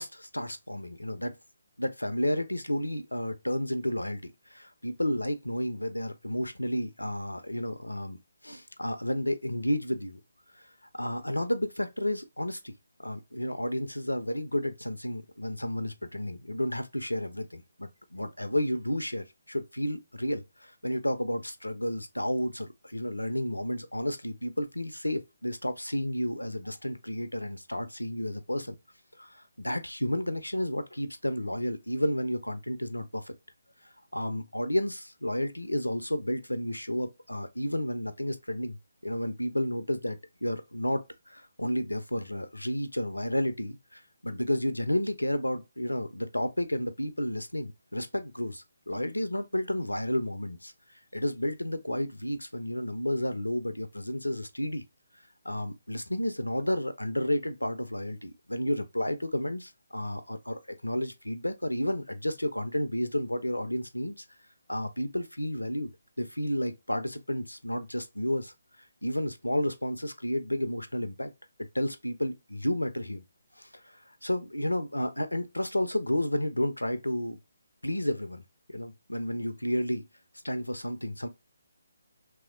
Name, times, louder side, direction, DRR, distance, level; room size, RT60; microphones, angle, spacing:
voice 1, 0.0-1.3 1.8-8.2 8.4-10.2 10.9-12.7 13.0-28.8 29.2-33.3 34.1-38.8 39.0-41.0 41.3-50.7 51.1-54.8 55.4-64.2 64.7-65.9 66.2-68.5 69.0-71.3 71.7-73.2 73.6-73.7 74.2-77.4 77.8-78.4 78.7-80.1 80.4-81.3, left 1 dB, 85° left, 0.5 m, -31 dB
3.1 x 2.7 x 2.4 m
figure-of-eight pair, 145°, 0 cm